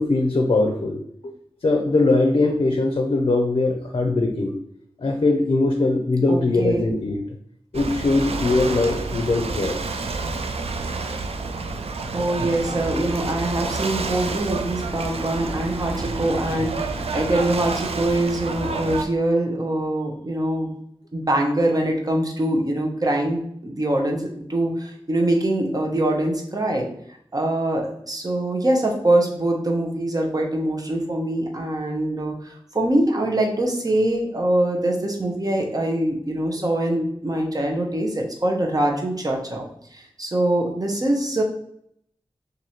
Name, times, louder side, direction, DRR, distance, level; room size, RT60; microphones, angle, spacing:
voice 1, 0.0-1.3 1.6-4.5 5.0-7.2 7.7-9.8, left 2 dB, 60° left, 2 dB, 0.5 m, -21 dB
voice 2, 6.3-6.8 12.1-20.7 21.1-26.9 27.3-39.6 39.9-41.4, right 1 dB, 40° right, 1 dB, 0.9 m, -23 dB
Ocean / Boat Water vehicle, 7.7-19.0, right 3 dB, 85° right, 0.4 m, -29 dB
3.0 x 2.6 x 4.1 m, 0.70 s
wide cardioid pair, 70°, 10 cm